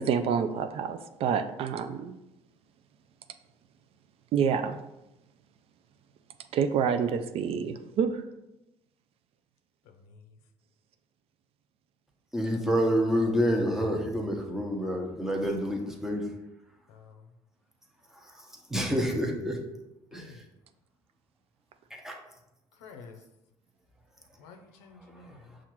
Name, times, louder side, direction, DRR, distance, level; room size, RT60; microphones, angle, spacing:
voice 1, 0.0-2.2 4.3-4.8 6.5-8.2, right 7 dB, 60° right, 9 dB, 0.4 m, -28 dB
voice 2, 9.8-10.4 16.9-17.3 20.1-20.5 22.7-23.2 24.4-25.6, left 4 dB, 85° left, 5 dB, 0.5 m, -51 dB
voice 3, 12.3-16.2 18.7-19.6 20.1-20.3 22.0-22.2, equal, 5° right, 0 dB, 0.9 m, -27 dB
5.6 x 2.4 x 3.0 m, 0.91 s
supercardioid pair, 75°, 11 cm